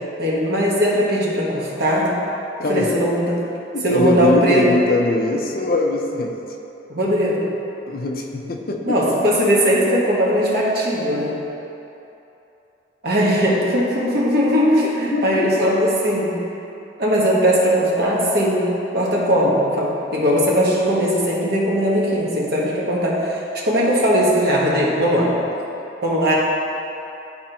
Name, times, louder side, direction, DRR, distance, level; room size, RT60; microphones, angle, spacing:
voice 1, 0.2-2.1 2.7-3.5 3.8-4.7 6.9-7.4 8.8-11.4 13.0-16.3 17.0-18.6 18.9-25.3 26.0-26.3, equal, 60° right, -5 dB, 1.3 m, -19 dB
voice 2, 2.6-2.9 3.7-6.4 7.9-9.0 15.1-15.5, left 2 dB, 55° left, 2 dB, 0.6 m, -22 dB
11.5 x 4.2 x 3.0 m, 2.9 s
head